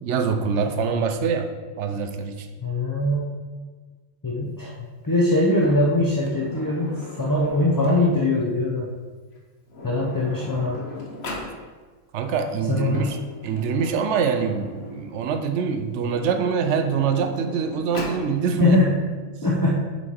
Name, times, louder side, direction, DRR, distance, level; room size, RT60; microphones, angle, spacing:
voice 1, 0.0-1.5 1.8-2.5 12.1-13.2 13.4-18.8, right 6 dB, 70° right, 7 dB, 0.9 m, -24 dB
voice 2, 2.6-3.3 4.2-8.9 9.8-10.8 12.7-13.1 18.6-19.0 19.4-19.8, left 1 dB, 25° left, -4 dB, 0.5 m, -22 dB
Sliding door, 5.5-8.3 9.3-9.4 9.7-11.5 12.7-15.2 16.0-18.3, left 2 dB, 55° left, 1.3 m, -38 dB
7.0 x 4.5 x 4.4 m, 1.4 s
omnidirectional pair, 1.4 m